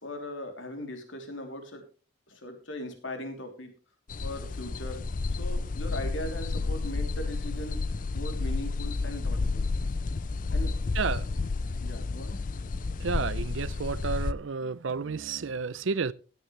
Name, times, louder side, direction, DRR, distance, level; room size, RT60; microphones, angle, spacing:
voice 1, 0.0-1.8 2.3-3.7 4.2-5.0 5.4-7.8 8.1-10.1 10.5-10.7 11.8-12.7, left 1 dB, 80° left, 3.3 m, -39 dB
sound 1, 4.1-14.3, left 3 dB, 40° left, 0.4 m, -31 dB
voice 2, 13.0-16.1, right 5 dB, 80° right, 0.6 m, -31 dB
16.0 x 9.3 x 3.3 m
head